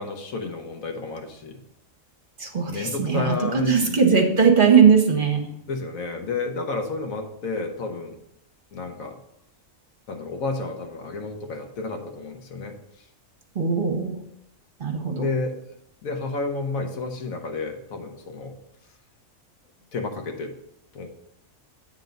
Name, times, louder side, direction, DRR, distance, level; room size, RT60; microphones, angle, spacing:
voice 1, 0.0-1.6 2.7-4.0 5.7-8.2 8.7-9.2 10.1-12.8 15.1-15.6 16.0-18.6 19.9-20.6 20.9-21.1, left 3 dB, 80° left, 4 dB, 1.4 m, -31 dB
voice 2, 2.4-3.3 3.7-5.4 13.5-14.2 14.8-15.3, right 6 dB, 45° right, 2 dB, 1.1 m, -19 dB
8.9 x 3.6 x 5.2 m, 0.77 s
omnidirectional pair, 1.4 m